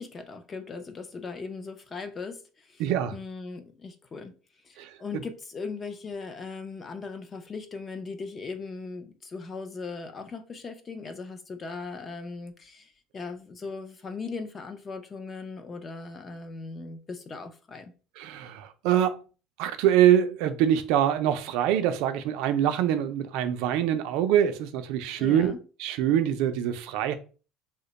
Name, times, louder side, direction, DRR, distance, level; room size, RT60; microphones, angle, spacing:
voice 1, 0.0-2.8 3.1-4.3 4.6-17.9 25.2-25.6, left 4 dB, 20° left, 0.4 m, -39 dB
voice 2, 2.8-3.1 4.8-4.9 18.2-19.2 19.6-25.5 25.8-27.2, right 10 dB, 65° right, 0.4 m, -24 dB
2.8 x 2.1 x 3.9 m
cardioid pair, 175°, 0 cm